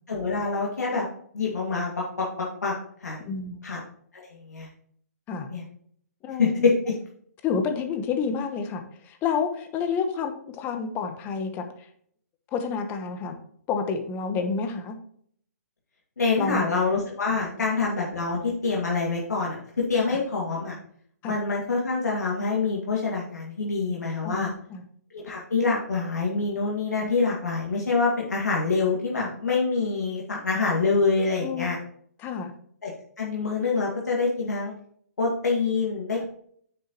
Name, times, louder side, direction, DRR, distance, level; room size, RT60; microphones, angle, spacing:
voice 1, 0.1-1.1 1.3-2.7 3.0-3.3 3.6-3.8 4.1-4.7 5.5-5.6 6.4-6.9 16.2-19.6 19.9-20.7 21.2-24.5 25.1-31.8 32.8-32.9 33.2-34.7 35.2-36.3, left 4 dB, 75° left, -3 dB, 2.2 m, -26 dB
voice 2, 3.3-3.7 5.3-5.5 6.2-6.7 7.4-11.6 12.5-13.4 13.7-15.0 16.4-16.7 21.2-21.4 24.2-24.8 31.4-31.7 32.2-32.5 36.2-36.3, left 5 dB, 20° left, 7 dB, 1.1 m, -29 dB
9.3 x 6.7 x 3.0 m, 0.62 s
hypercardioid pair, 140°, 9 cm